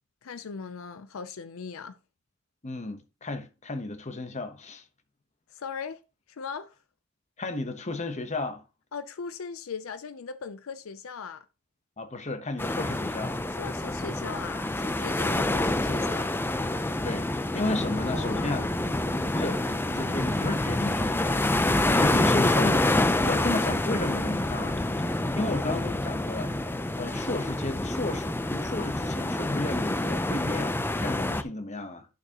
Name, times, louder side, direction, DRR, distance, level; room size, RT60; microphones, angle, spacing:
voice 1, 0.2-2.0 5.5-6.0 6.3-6.7 8.9-11.5 13.5-16.4 17.8-18.9, left 5 dB, 75° left, 0.5 m, -39 dB
voice 2, 2.6-4.8 7.4-8.6 12.0-13.4 15.2-15.5 17.0-18.6 19.3-19.7 19.9-25.1 25.4-26.5 27.0-32.1, left 2 dB, 35° left, 1.0 m, -33 dB
sound 1, 12.6-31.4, left 1 dB, 10° left, 0.5 m, -27 dB
sound 2, 18.0-27.6, right 1 dB, 70° right, 1.6 m, -46 dB
11.0 x 6.7 x 2.9 m
head